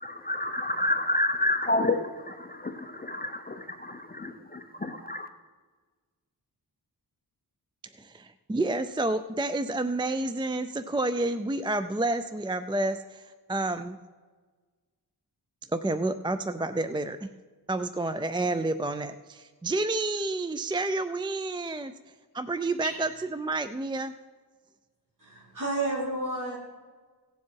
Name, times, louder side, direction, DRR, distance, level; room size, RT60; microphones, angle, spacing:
voice 1, 0.0-5.3, left 2 dB, 20° left, 6 dB, 0.7 m, -29 dB
voice 2, 8.0-14.0 15.7-17.3 17.7-21.9 22.3-24.1, right 2 dB, 15° right, 11 dB, 0.3 m, -29 dB
voice 3, 22.8-23.1 25.2-26.6, right 2 dB, 50° right, -5 dB, 4.5 m, -31 dB
17.0 x 7.4 x 4.6 m, 1.4 s
wide cardioid pair, 95°, 40 cm